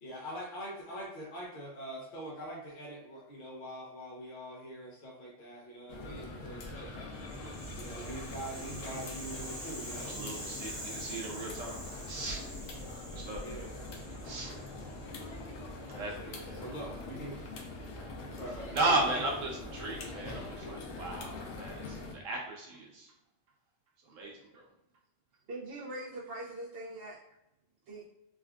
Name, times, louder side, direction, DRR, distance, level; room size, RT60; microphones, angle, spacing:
voice 1, 0.0-6.9 7.8-10.2 13.4-13.7 14.2-14.3 16.0-17.4 18.3-19.4, right 1 dB, 55° left, -4 dB, 0.6 m, -43 dB
sound 1, 5.9-22.1, left 2 dB, 85° left, 1.0 m, -43 dB
Rattle (instrument), 7.2-15.4, equal, 15° right, 1.0 m, -46 dB
voice 2, 9.9-12.4 13.1-13.7 14.2-14.6 15.9-16.6 18.7-21.3 21.6-23.1 24.1-24.6, right 2 dB, 80° right, -1 dB, 1.1 m, -36 dB
voice 3, 25.5-27.2 27.9-28.1, right 1 dB, 65° right, -7 dB, 0.8 m, -42 dB
3.5 x 2.3 x 2.3 m, 0.88 s
omnidirectional pair, 1.3 m